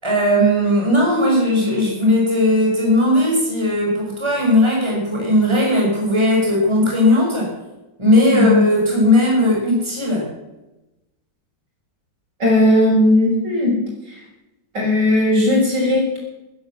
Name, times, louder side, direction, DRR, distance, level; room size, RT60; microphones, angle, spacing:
voice 1, 0.0-7.5 8.0-10.3, left 1 dB, 15° right, -2 dB, 5.5 m, -17 dB
voice 2, 12.4-13.7 14.7-16.2, left 1 dB, 65° right, -3 dB, 7.6 m, -16 dB
16.5 x 10.5 x 7.5 m, 1.0 s
omnidirectional pair, 2.0 m